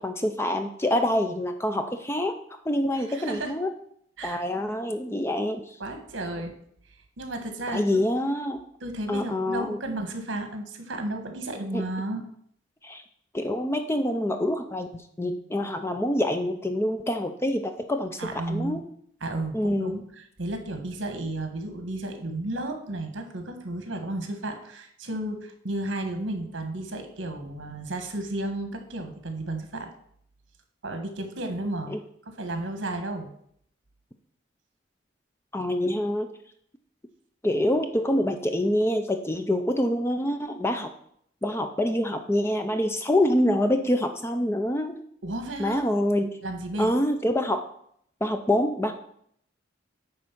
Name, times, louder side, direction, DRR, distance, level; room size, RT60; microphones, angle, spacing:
voice 1, 0.0-2.3 2.7-3.7 4.2-5.8 7.7-8.6 9.1-9.8 11.7-11.8 12.8-13.0 13.3-18.2 18.5-18.8 19.5-20.0 31.9-32.0 35.5-36.3 37.4-40.9 41.4-45.0 45.6-46.4 46.8-47.6 48.2-48.9, left 1 dB, 15° left, 7 dB, 0.5 m, -26 dB
voice 2, 3.0-3.5 4.2-4.4 5.8-6.6 7.2-8.0 8.8-12.2 18.2-18.8 19.2-29.9 30.8-31.9 32.3-33.3 45.2-45.8 46.4-47.0, right 1 dB, 70° right, 5 dB, 1.4 m, -33 dB
9.5 x 3.7 x 6.0 m, 0.67 s
head